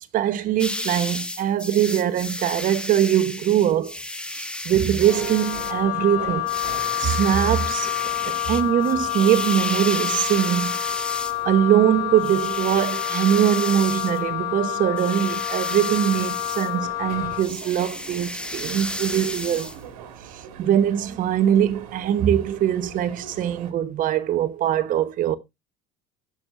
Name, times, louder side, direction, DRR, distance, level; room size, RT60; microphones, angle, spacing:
voice 1, 0.1-3.9 4.3-6.5 7.0-7.9 8.2-10.8 11.4-19.7 20.3-25.4, right 10 dB, 50° right, 1.0 m, -22 dB
sound 1, 0.6-5.8 6.5-11.4 12.2-14.2 14.9-16.7 17.3-19.8, left 1 dB, 5° left, 1.0 m, -33 dB
Wind instrument woodwind instrument, 5.0-17.5, left 16 dB, 85° left, 1.7 m, -28 dB
sound 2, 5.0-23.7, right 7 dB, 85° right, 2.1 m, -43 dB
17.5 x 6.4 x 2.5 m
supercardioid pair, 110°, 18 cm